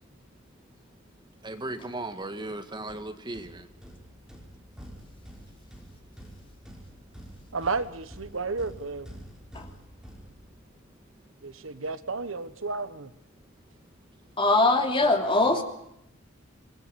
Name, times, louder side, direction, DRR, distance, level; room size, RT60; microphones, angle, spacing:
voice 1, 1.4-3.6 15.0-15.6, right 2 dB, 20° right, 8 dB, 1.7 m, -37 dB
sound 1, 2.9-10.9, equal, 5° right, 5.3 m, -48 dB
voice 2, 7.5-9.1 11.4-13.1, right 4 dB, 70° right, 13 dB, 1.3 m, -32 dB
voice 3, 14.4-15.6, left 2 dB, 25° left, 4 dB, 3.1 m, -22 dB
27.0 x 18.5 x 7.0 m, 0.79 s
head